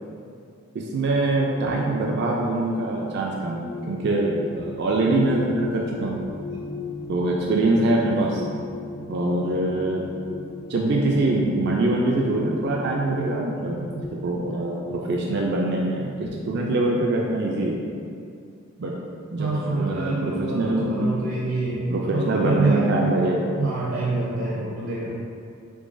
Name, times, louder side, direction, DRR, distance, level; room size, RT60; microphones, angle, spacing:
voice 1, 0.7-6.2 7.1-8.5 9.1-10.0 10.7-17.8 18.8-18.9 19.3-21.0 21.9-23.5, right 2 dB, 55° right, -2 dB, 0.3 m, -24 dB
sound 1, 3.2-16.0, left 3 dB, 25° left, 0.5 m, -37 dB
voice 2, 19.4-21.9 22.1-23.0 23.5-25.1, right 2 dB, 85° right, -7 dB, 0.7 m, -26 dB
3.7 x 3.3 x 2.5 m, 2.4 s
head